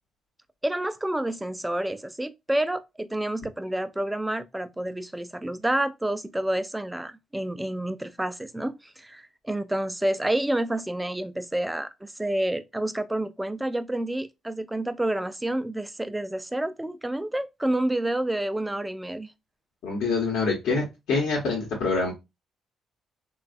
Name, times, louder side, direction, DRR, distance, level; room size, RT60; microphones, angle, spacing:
voice 1, 0.6-19.3, right 1 dB, 10° right, 0.3 m, -29 dB
voice 2, 19.8-22.1, left 4 dB, 85° left, 1.0 m, -25 dB
3.2 x 2.3 x 2.4 m
cardioid pair, 90°, 0 cm